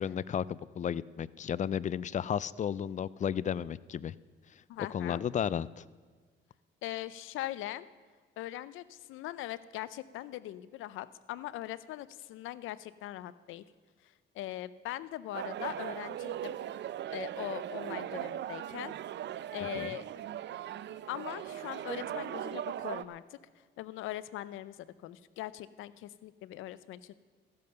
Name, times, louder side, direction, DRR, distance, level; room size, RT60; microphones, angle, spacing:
voice 1, 0.0-4.1 4.9-5.8 19.7-19.9, left 8 dB, 40° left, 20 dB, 0.4 m, -33 dB
voice 2, 4.7-5.2 6.8-7.9 8.4-13.6 14.3-16.6 17.1-18.9 19.5-20.0 21.1-23.4 23.8-27.1, left 14 dB, 90° left, 16 dB, 0.6 m, -41 dB
sound 1, 15.3-23.0, right 11 dB, 65° right, 0.5 m, -39 dB
14.5 x 11.0 x 6.7 m, 1.5 s
cardioid pair, 90°, 20 cm